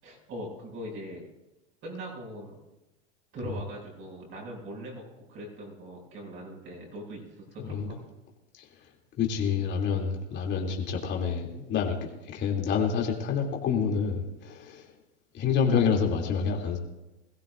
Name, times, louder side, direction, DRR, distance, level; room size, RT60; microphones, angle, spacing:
voice 1, 0.0-1.3 1.8-2.6 3.3-8.0, equal, 35° right, -2 dB, 6.4 m, -41 dB
voice 2, 9.2-14.9 15.3-16.8, left 6 dB, 30° left, 0 dB, 2.9 m, -28 dB
22.0 x 15.5 x 2.6 m, 0.99 s
supercardioid pair, 135°, 34 cm